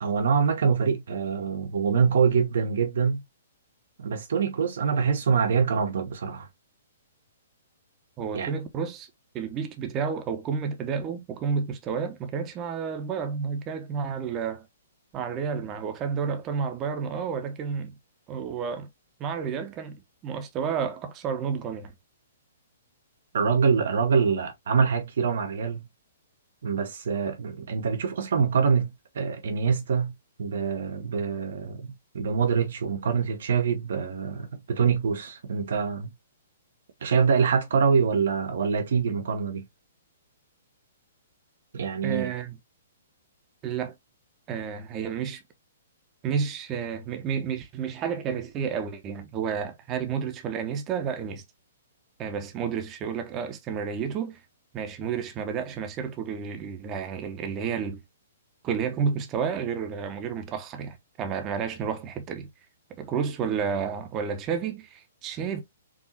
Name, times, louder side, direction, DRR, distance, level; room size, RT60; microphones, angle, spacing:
voice 1, 0.0-3.2 4.0-6.5 8.3-8.5 23.3-25.8 26.6-30.1 30.4-36.1 37.0-39.6 41.7-42.3, right 6 dB, 60° right, 0.8 m, -25 dB
voice 2, 8.2-9.1 9.3-14.7 15.1-17.9 18.3-18.9 19.2-21.9 42.0-42.6 43.6-43.9 44.5-45.4 46.2-51.4 52.2-54.4 54.7-58.0 58.6-62.5 63.0-65.6, right 6 dB, 25° right, 0.9 m, -31 dB
4.8 x 2.7 x 2.7 m
figure-of-eight pair, 120°, 0 cm